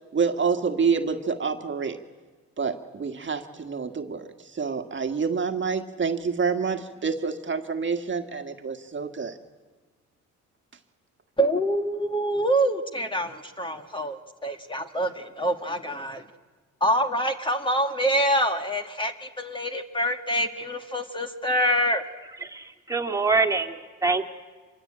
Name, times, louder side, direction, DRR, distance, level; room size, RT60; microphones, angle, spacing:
voice 1, 0.1-2.0 2.6-9.3, right 5 dB, 40° right, 6 dB, 1.8 m, -27 dB
voice 2, 11.4-16.2 16.8-22.0, equal, 15° left, 5 dB, 1.7 m, -26 dB
voice 3, 22.4-24.3, right 3 dB, 10° right, 4 dB, 2.4 m, -25 dB
26.0 x 22.0 x 8.8 m, 1.4 s
cardioid pair, 90°, 30 cm